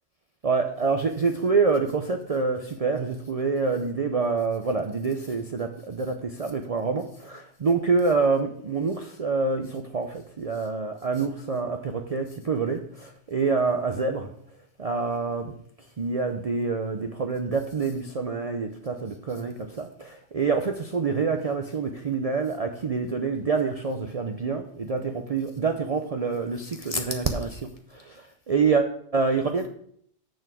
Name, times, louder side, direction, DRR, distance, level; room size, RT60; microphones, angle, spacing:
voice 1, 0.4-14.3 14.8-15.5 16.0-29.7, right 4 dB, 40° right, 0.6 m, -26 dB
6.9 x 6.3 x 6.1 m
omnidirectional pair, 1.1 m